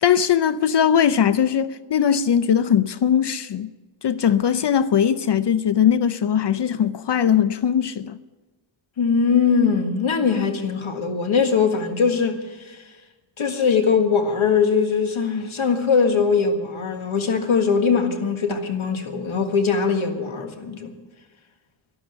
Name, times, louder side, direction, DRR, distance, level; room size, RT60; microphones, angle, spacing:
voice 1, 0.0-3.7 4.0-8.2, left 8 dB, 60° left, 0.6 m, -20 dB
voice 2, 9.0-12.4 12.7-12.8 13.4-20.9, left 5 dB, 80° left, 1.8 m, -21 dB
12.5 x 12.0 x 8.0 m
wide cardioid pair, 85°, 47 cm